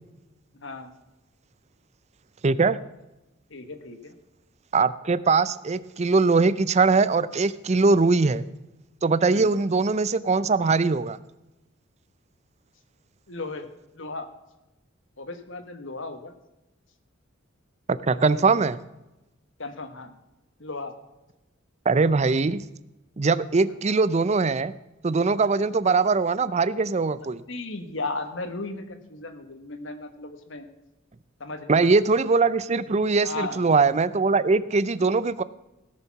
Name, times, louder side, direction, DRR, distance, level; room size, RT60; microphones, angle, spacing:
voice 1, 0.5-0.9 3.5-4.1 9.3-9.5 13.3-14.3 15.2-16.3 18.1-18.6 19.6-20.1 20.6-20.9 27.5-30.7 31.4-32.0 33.2-33.6, left 3 dB, 65° left, 8 dB, 1.4 m, -36 dB
voice 2, 2.4-2.8 4.7-8.4 9.0-11.2 17.9-18.8 21.9-22.6 23.2-24.7 25.0-27.4 31.7-35.4, right 4 dB, 35° right, 16 dB, 0.5 m, -21 dB
17.0 x 7.0 x 5.9 m, 1.0 s
head